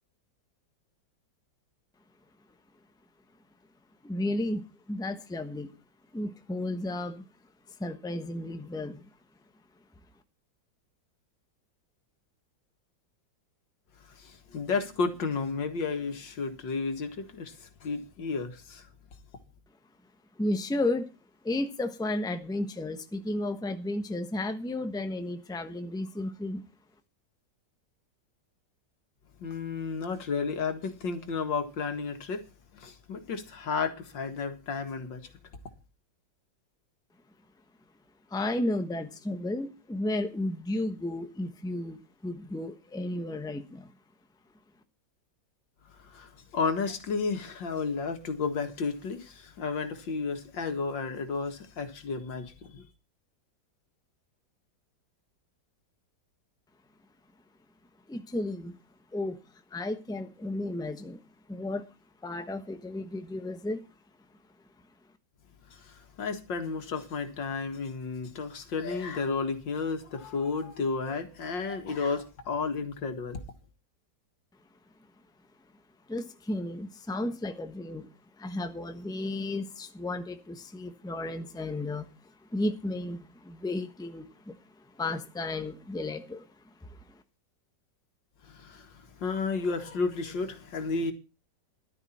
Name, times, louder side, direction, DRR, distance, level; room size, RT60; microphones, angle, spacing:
voice 1, 4.0-5.7 6.1-7.2 7.8-9.0 20.4-21.1 21.4-26.6 38.3-42.0 42.2-43.9 58.1-58.7 59.1-59.4 59.7-61.2 61.5-61.9 62.2-63.8 76.1-78.1 78.4-82.1 82.5-86.5 86.8-87.2, left 2 dB, 5° left, 0.9 m, -33 dB
voice 2, 14.0-18.9 29.4-32.5 32.7-35.3 46.0-52.9 65.7-73.4 88.4-91.1, left 4 dB, 90° left, 2.5 m, -32 dB
14.0 x 12.0 x 4.3 m
omnidirectional pair, 1.9 m